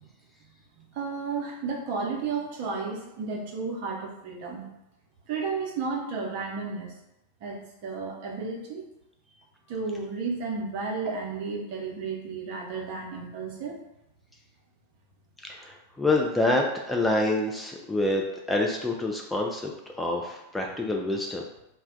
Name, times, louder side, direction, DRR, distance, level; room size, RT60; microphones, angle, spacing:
voice 1, 0.8-4.7 5.3-6.9 7.4-8.8 9.7-13.8, right 4 dB, 45° right, -1 dB, 0.7 m, -33 dB
voice 2, 15.5-21.4, left 2 dB, 5° left, 0 dB, 0.3 m, -27 dB
2.2 x 2.2 x 3.7 m, 0.87 s
figure-of-eight pair, 90°, 0 cm